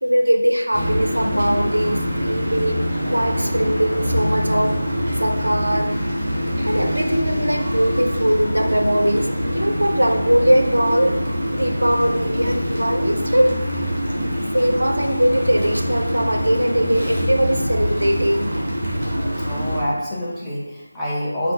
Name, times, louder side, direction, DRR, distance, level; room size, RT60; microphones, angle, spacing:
voice 1, 0.0-4.8 5.1-5.9 6.6-9.3 9.5-11.2 11.5-13.6 14.1-18.5, equal, 75° right, 3 dB, 0.4 m, -20 dB
sound 1, 0.7-19.8, equal, 25° right, 0.7 m, -24 dB
voice 2, 19.4-21.5, equal, 5° left, -9 dB, 0.4 m, -26 dB
3.7 x 2.3 x 2.3 m, 1.1 s
figure-of-eight pair, 165°, 0 cm